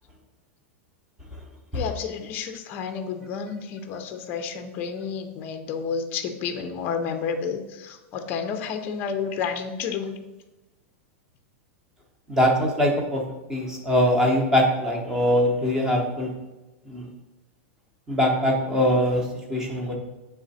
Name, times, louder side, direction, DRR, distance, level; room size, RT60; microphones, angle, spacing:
voice 1, 1.7-10.1, left 6 dB, 25° left, 7 dB, 0.5 m, -30 dB
voice 2, 12.3-13.2 13.5-16.3 16.9-17.1 18.1-19.9, equal, 10° right, 0 dB, 0.8 m, -22 dB
8.4 x 3.3 x 4.1 m, 1.1 s
supercardioid pair, 175°, 7 cm